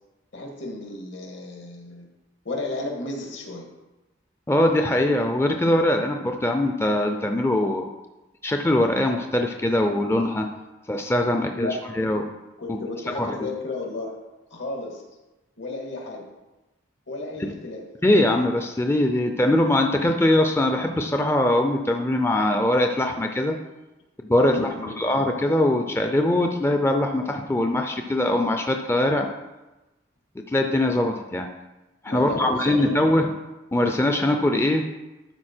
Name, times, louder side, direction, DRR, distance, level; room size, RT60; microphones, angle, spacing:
voice 1, 0.3-2.1 2.4-3.7 11.5-11.8 12.6-14.2 14.5-15.0 15.6-16.3 17.1-17.9 24.4-25.0 32.0-33.2, left 2 dB, 75° left, 1 dB, 1.8 m, -33 dB
voice 2, 4.5-7.8 8.4-10.5 10.9-12.3 12.7-12.8 13.2-13.3 17.4-17.5 18.0-23.5 24.2-29.3 30.5-31.5 32.0-33.3 33.7-34.9, left 1 dB, 15° left, 4 dB, 0.4 m, -22 dB
12.5 x 4.5 x 4.4 m, 1.1 s
head